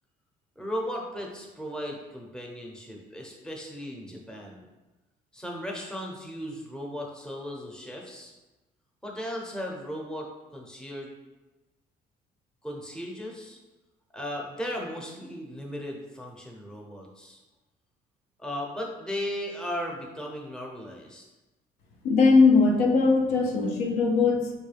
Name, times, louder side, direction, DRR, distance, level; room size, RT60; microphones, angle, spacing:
voice 1, 0.6-4.6 5.3-8.3 9.0-11.1 12.6-13.6 14.1-17.4 18.4-21.3, equal, 5° left, 0 dB, 0.7 m, -36 dB
voice 2, 22.0-24.5, left 4 dB, 90° left, 1 dB, 0.6 m, -20 dB
4.5 x 2.2 x 3.3 m, 1.1 s
cardioid pair, 110°, 17 cm